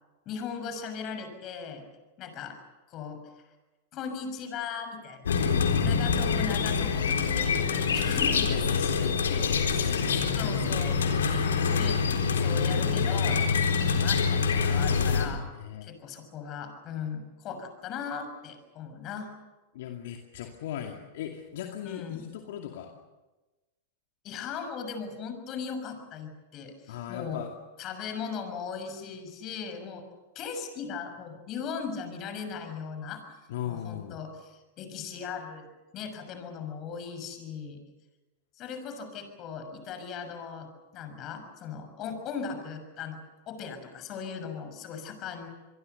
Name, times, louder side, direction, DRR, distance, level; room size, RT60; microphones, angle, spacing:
voice 1, 0.3-1.8 2.2-2.6 2.9-3.2 3.9-5.3 5.8-8.5 10.0-15.5 15.8-19.3 21.8-22.2 24.2-27.4 27.8-30.1 30.3-33.4 33.7-35.7 35.9-37.8 38.5-43.2 43.5-45.5, left 6 dB, 40° left, 7 dB, 6.3 m, -38 dB
sound 1, 5.2-15.3, left 5 dB, 80° left, 3.9 m, -25 dB
voice 2, 8.3-10.2 15.5-15.9 19.7-22.9 26.9-27.5 33.5-34.2, left 10 dB, 65° left, 3 dB, 2.4 m, -38 dB
27.0 x 22.5 x 6.8 m, 1.1 s
hypercardioid pair, 105°, 0 cm